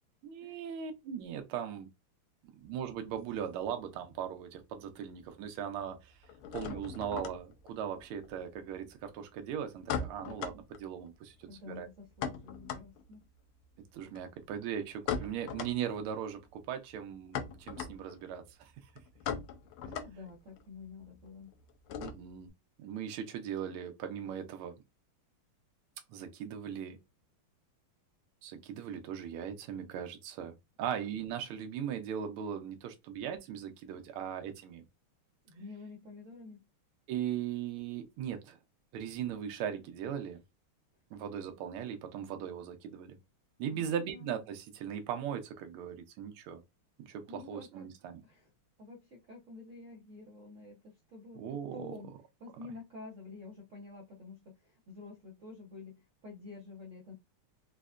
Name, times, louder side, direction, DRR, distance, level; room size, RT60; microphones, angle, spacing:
voice 1, 0.2-1.9 2.6-6.1 6.5-11.9 13.9-18.7 22.0-22.5 22.8-24.7 26.1-27.0 28.4-34.8 37.1-38.6 38.9-40.4 41.1-43.2 43.6-46.6 47.0-48.2 51.4-51.9, right 9 dB, 80° right, 1.5 m, -39 dB
sound 1, 2.6-4.3 4.5-5.2 5.5-22.5, left 7 dB, 90° left, 1.5 m, -41 dB
voice 2, 11.5-13.2 19.9-21.5 35.4-36.7 43.7-44.4 47.2-47.9 48.2-48.5 48.8-51.4 51.7-57.1, left 3 dB, 65° right, 0.7 m, -49 dB
5.0 x 2.1 x 2.4 m
omnidirectional pair, 2.4 m